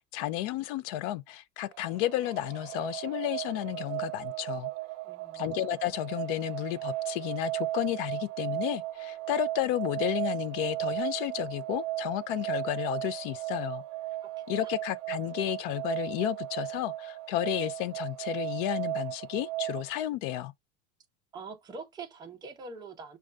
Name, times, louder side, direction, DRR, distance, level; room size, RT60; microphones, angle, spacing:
voice 1, 0.1-4.7 5.3-13.8 14.5-20.5, left 14 dB, 55° left, 0.4 m, -32 dB
sound 1, 1.7-19.9, right 16 dB, 80° right, 0.6 m, -36 dB
voice 2, 5.0-5.5 14.2-14.3 14.6-14.7 21.3-23.2, right 4 dB, 10° right, 0.6 m, -44 dB
6.3 x 2.3 x 2.4 m
supercardioid pair, 155°, 34 cm